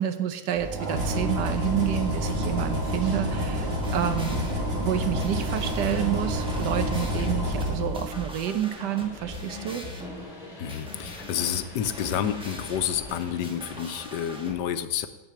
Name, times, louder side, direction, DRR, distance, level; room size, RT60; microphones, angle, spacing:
voice 1, 0.0-4.5 4.8-9.9, right 10 dB, 80° right, 9 dB, 1.4 m, -29 dB
sound 1, 0.5-8.5, equal, 35° right, 1.8 m, -28 dB
sound 2, 3.6-14.5, left 1 dB, 5° right, 0.9 m, -41 dB
sound 3, 8.7-14.0, left 1 dB, 30° left, 2.2 m, -45 dB
voice 2, 10.6-15.1, left 9 dB, 90° left, 11 dB, 1.2 m, -29 dB
8.8 x 4.8 x 7.4 m, 1.1 s
omnidirectional pair, 1.8 m